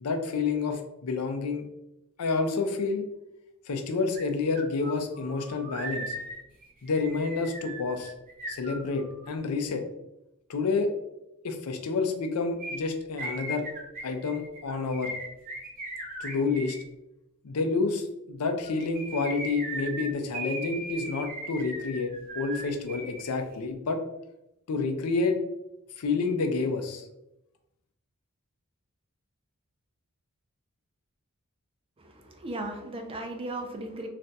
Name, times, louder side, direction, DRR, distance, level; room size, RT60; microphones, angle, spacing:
voice 1, 0.0-1.6 2.2-3.0 3.7-6.2 6.8-8.1 8.5-9.8 10.5-10.9 11.4-13.6 14.0-15.1 16.2-16.8 17.4-24.0 24.7-25.4 26.0-27.1, left 4 dB, 85° left, 5 dB, 0.5 m, -29 dB
sound 1, 4.1-4.2 4.5-9.3 12.6-16.8 18.6-23.3 23.5-23.6, right 2 dB, 40° right, 0.9 m, -38 dB
voice 2, 32.0-34.1, right 1 dB, 25° right, 3 dB, 0.4 m, -36 dB
2.5 x 2.2 x 3.9 m, 0.89 s
head